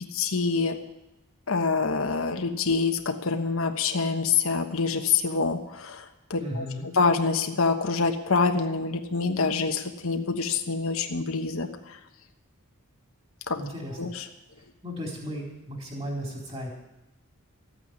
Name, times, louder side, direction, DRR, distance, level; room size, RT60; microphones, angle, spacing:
voice 1, 0.1-0.8 1.5-6.6 7.0-12.0 13.5-13.6 14.0-14.2, left 4 dB, 75° left, 6 dB, 1.2 m, -26 dB
voice 2, 6.4-6.9 13.6-14.1 14.8-16.7, equal, 25° right, -1 dB, 4.2 m, -35 dB
14.5 x 9.0 x 9.6 m, 0.96 s
head